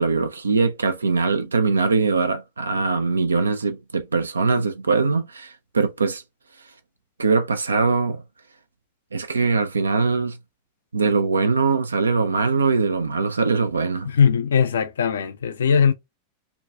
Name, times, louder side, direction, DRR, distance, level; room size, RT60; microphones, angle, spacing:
voice 1, 0.0-6.2 7.2-8.2 9.1-10.4 10.9-14.1, right 4 dB, 75° right, 0.3 m, -22 dB
voice 2, 14.1-15.9, left 6 dB, 65° left, 0.4 m, -19 dB
2.5 x 2.2 x 3.2 m
figure-of-eight pair, 90°, 0 cm